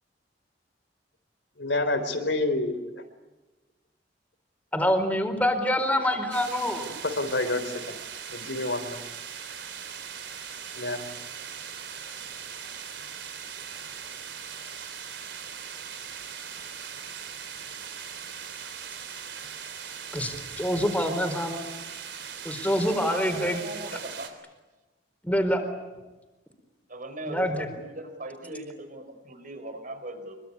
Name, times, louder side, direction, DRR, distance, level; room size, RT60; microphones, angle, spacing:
voice 1, 1.6-2.8 7.0-8.0 8.3-9.0 10.8-11.1, left 2 dB, 75° left, 9 dB, 3.6 m, -28 dB
voice 2, 4.7-6.9 20.1-21.6 22.4-23.6 25.2-25.6 27.2-27.7, equal, 10° left, 6 dB, 4.3 m, -26 dB
sound 1, 6.3-24.3, right 7 dB, 70° right, 3.7 m, -40 dB
voice 3, 22.8-24.3 26.9-30.4, right 1 dB, 50° right, 8 dB, 4.7 m, -39 dB
25.0 x 23.5 x 9.9 m, 1.1 s
head